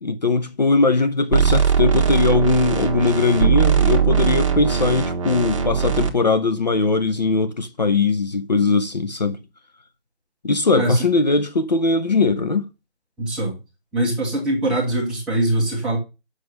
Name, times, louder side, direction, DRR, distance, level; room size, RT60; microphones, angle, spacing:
voice 1, 0.0-9.4 10.4-12.7, left 3 dB, 40° left, 0.8 m, -20 dB
sound 1, 1.3-6.1, right 7 dB, 30° right, 1.2 m, -20 dB
voice 2, 10.7-11.1 13.2-13.5 13.9-16.0, right 1 dB, ahead, 1.1 m, -22 dB
7.7 x 6.5 x 6.6 m
figure-of-eight pair, 150°, 33 cm